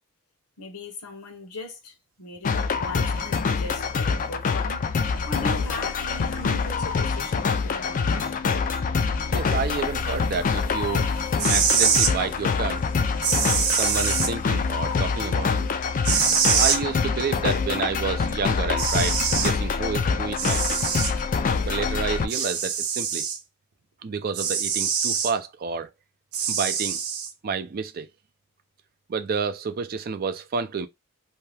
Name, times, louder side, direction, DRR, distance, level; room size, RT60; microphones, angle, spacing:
voice 1, 0.6-8.4, left 2 dB, 90° left, 1.0 m, -39 dB
sound 1, 2.4-22.3, left 5 dB, 35° left, 0.3 m, -25 dB
voice 2, 9.3-11.1 11.5-12.8 13.7-15.7 16.5-20.8 21.6-23.3 24.0-25.9 26.5-27.0 27.4-28.1 29.1-30.9, right 5 dB, 45° right, 0.4 m, -30 dB
sound 2, 11.4-12.1 13.2-14.3 16.0-16.8 18.3-18.4 18.8-19.5 20.4-21.1 22.3-23.4 24.3-25.3 26.3-27.3, right 7 dB, 75° right, 0.7 m, -24 dB
2.7 x 2.2 x 3.2 m
head